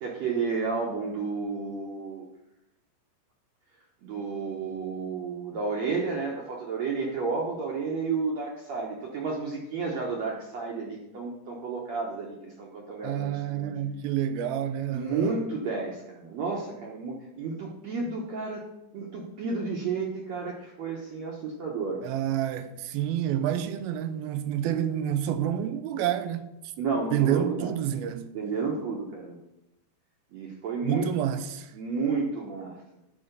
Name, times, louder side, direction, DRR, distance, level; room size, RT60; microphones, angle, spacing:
voice 1, 0.0-2.3 4.0-13.8 14.9-18.6 18.9-22.0 26.8-27.7 28.3-29.4 30.3-31.1 31.7-32.8, right 4 dB, 65° right, 1.8 m, -31 dB
voice 2, 13.0-15.4 22.0-26.5 27.1-28.3 30.8-31.7, right 10 dB, 85° right, 2.5 m, -28 dB
10.5 x 5.0 x 6.7 m
omnidirectional pair, 4.4 m